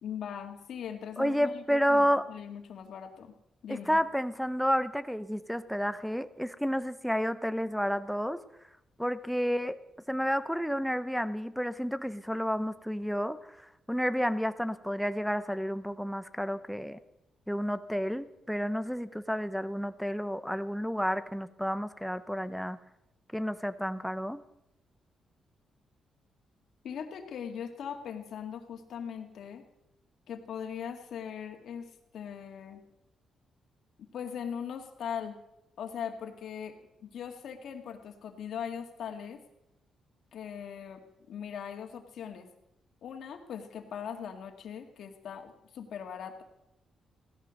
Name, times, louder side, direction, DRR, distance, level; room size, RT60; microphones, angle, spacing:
voice 1, 0.0-3.3 3.6-4.0 26.8-29.6 30.3-32.8 34.0-35.4 35.8-36.8 37.0-39.4 40.3-41.0 41.3-42.5 43.0-46.4, left 8 dB, 70° left, 5 dB, 2.1 m, -40 dB
voice 2, 1.2-2.3 3.7-8.4 9.0-9.8 10.1-17.0 17.5-22.8 23.3-24.4, equal, ahead, 12 dB, 0.8 m, -30 dB
16.5 x 12.5 x 6.5 m, 0.86 s
cardioid pair, 110°, 0 cm